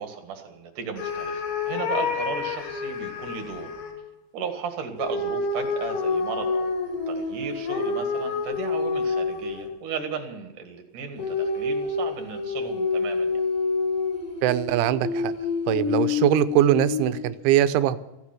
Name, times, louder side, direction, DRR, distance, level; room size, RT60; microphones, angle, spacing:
voice 1, 0.0-3.7 4.3-13.4, right 6 dB, 55° right, 5 dB, 2.7 m, -35 dB
sound 1, 1.0-3.9 5.0-9.8 11.2-17.3, left 4 dB, 60° left, 5.1 m, -28 dB
voice 2, 14.4-15.3 15.7-18.0, right 12 dB, 85° right, 12 dB, 3.1 m, -21 dB
15.5 x 14.5 x 6.0 m, 1.0 s
omnidirectional pair, 5.5 m